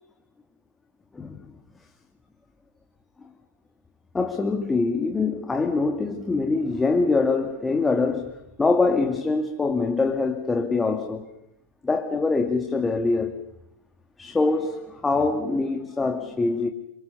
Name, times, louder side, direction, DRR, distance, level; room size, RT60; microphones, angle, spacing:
voice 1, 4.1-11.3 11.8-13.4 14.2-16.7, left 3 dB, 10° left, 2.2 m, -24 dB
28.5 x 26.5 x 7.0 m
figure-of-eight pair, 90°, 0 cm